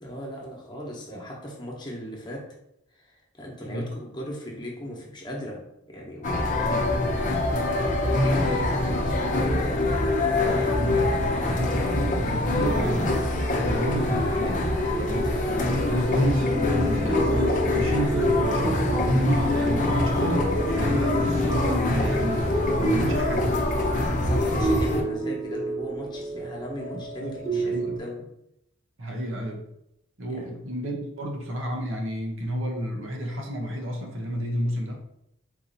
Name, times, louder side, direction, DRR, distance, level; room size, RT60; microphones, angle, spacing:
voice 1, 0.0-2.4 2.9-6.7 8.0-10.1 10.4-11.5 24.2-28.2 30.3-30.6, equal, 20° left, -2 dB, 1.1 m, -38 dB
sound 1, 6.2-25.0, left 2 dB, 40° left, 0.7 m, -24 dB
voice 2, 6.4-7.2 8.7-8.8 10.7-14.6 14.9-15.3 15.6-22.4 22.8-23.5 26.9-28.0 29.0-29.7 30.2-35.0, equal, 70° right, 0 dB, 1.0 m, -31 dB
sound 2, 14.9-28.0, right 2 dB, 15° right, 1.0 m, -31 dB
4.6 x 2.8 x 4.0 m, 0.81 s
head